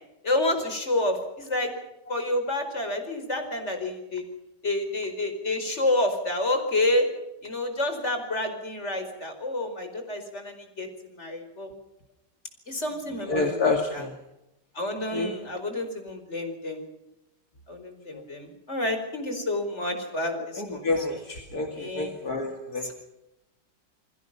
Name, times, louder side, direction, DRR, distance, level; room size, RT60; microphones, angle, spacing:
voice 1, 0.2-1.7 2.1-4.2 4.6-7.1 7.4-10.9 11.2-11.7 12.7-13.6 13.9-14.0 14.7-16.8 17.7-21.0 21.7-22.1 22.8-22.9, left 1 dB, 40° left, 6 dB, 5.0 m, -29 dB
voice 2, 13.3-14.1 15.1-15.3 20.3-22.9, left 3 dB, 65° left, 3 dB, 3.0 m, -28 dB
29.5 x 21.0 x 5.7 m, 0.91 s
omnidirectional pair, 1.8 m